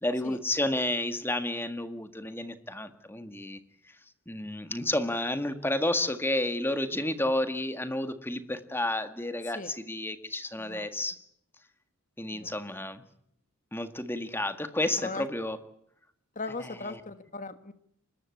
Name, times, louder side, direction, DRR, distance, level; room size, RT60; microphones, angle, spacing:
voice 1, 0.0-3.6 4.3-11.2 12.2-13.0 13.7-15.6 16.6-17.0, left 1 dB, 10° left, 9 dB, 1.8 m, -31 dB
voice 2, 10.6-10.9 12.3-12.6 15.0-15.3 16.3-17.7, left 3 dB, 35° left, 10 dB, 1.5 m, -38 dB
24.5 x 21.0 x 8.5 m, 0.70 s
head